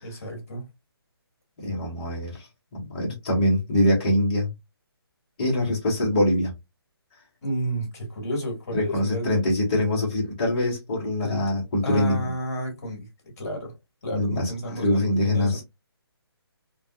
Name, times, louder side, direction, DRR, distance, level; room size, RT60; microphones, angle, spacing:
voice 1, 0.0-0.6 7.4-9.4 11.2-11.5 11.8-13.1 13.4-13.7 14.0-15.6, right 1 dB, 40° left, 1.5 m, -31 dB
voice 2, 1.6-4.5 5.4-6.5 8.7-12.3 14.1-14.5 14.8-15.6, left 1 dB, 20° left, 0.9 m, -24 dB
3.4 x 2.1 x 2.2 m
hypercardioid pair, 175°, 13 cm